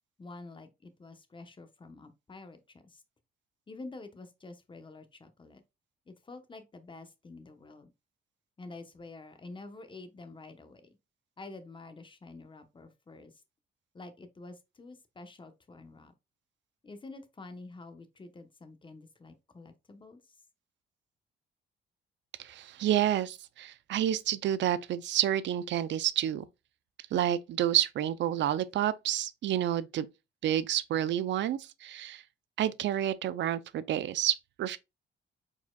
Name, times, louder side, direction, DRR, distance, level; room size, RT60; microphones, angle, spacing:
voice 1, 0.2-3.0 3.7-5.6 6.1-7.9 8.6-10.9 11.4-13.4 13.9-16.1 16.8-20.4, left 3 dB, 25° left, 0.9 m, -48 dB
voice 2, 22.4-26.5 27.1-30.1 30.4-32.2 32.6-34.8, right 11 dB, 65° right, 0.5 m, -29 dB
4.7 x 4.2 x 2.3 m
cardioid pair, 90°, 20 cm